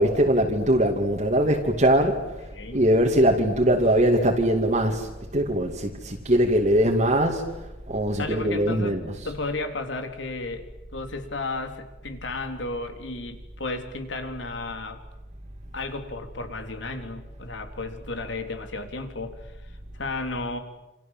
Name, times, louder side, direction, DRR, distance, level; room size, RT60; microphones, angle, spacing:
voice 1, 0.0-2.2 2.7-7.5 7.9-9.3, right 1 dB, 40° right, 2.5 m, -21 dB
voice 2, 2.5-2.8 8.2-9.0 9.3-10.7 10.9-15.0 15.7-19.5 19.9-20.6, left 2 dB, 80° left, 3.7 m, -33 dB
28.5 x 27.5 x 7.5 m
head